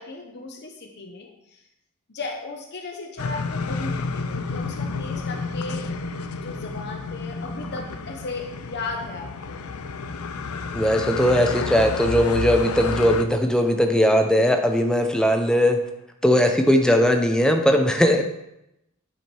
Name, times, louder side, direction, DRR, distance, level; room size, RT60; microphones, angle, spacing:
voice 1, 0.0-1.6 2.1-5.8 6.4-9.6, left 3 dB, 50° left, 2 dB, 0.9 m, -36 dB
sound 1, 3.2-13.2, left 4 dB, 80° left, 0.6 m, -30 dB
voice 2, 10.7-15.8 16.2-18.2, equal, 5° left, 4 dB, 0.7 m, -19 dB
9.5 x 5.1 x 4.5 m, 0.85 s
head